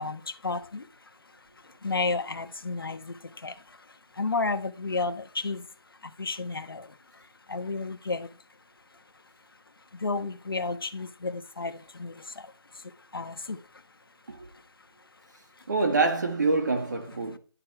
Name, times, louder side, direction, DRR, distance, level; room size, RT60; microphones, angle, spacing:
voice 1, 0.0-8.4 8.9-13.9 14.2-15.7, left 3 dB, 55° left, 1.4 m, -34 dB
voice 2, 15.7-17.4, right 3 dB, 40° right, 2.0 m, -26 dB
11.5 x 8.1 x 4.6 m
figure-of-eight pair, 175°, 14 cm